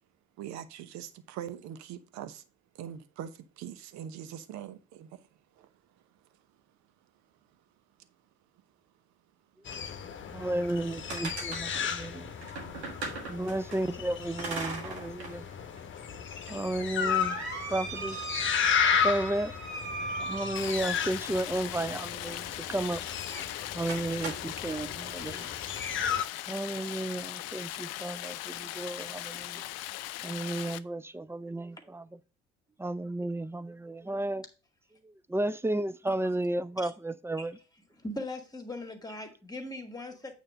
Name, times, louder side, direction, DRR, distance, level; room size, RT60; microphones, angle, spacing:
voice 1, 0.4-2.4 2.7-5.2 5.6-5.7, right 10 dB, 60° right, 0.9 m, -42 dB
sound 1, 9.6-26.2, left 7 dB, 40° left, 1.1 m, -34 dB
voice 2, 10.3-12.3 13.3-15.5 16.5-17.4 17.7-18.2 19.0-19.5 20.2-23.0 23.7-25.6 26.5-29.7 30.2-32.0 32.8-34.4 35.3-37.6, right 1 dB, 10° right, 0.6 m, -33 dB
sound 2, 10.7-13.8 14.4-15.4 15.8-15.9 16.5-21.1 23.3-23.5 23.9-24.8, right 3 dB, 85° right, 1.6 m, -39 dB
Stream, 20.6-30.8, left 15 dB, 55° left, 0.6 m, -39 dB
voice 3, 38.0-40.3, left 1 dB, 10° left, 2.0 m, -39 dB
8.8 x 3.4 x 6.3 m
hypercardioid pair, 55°, 32 cm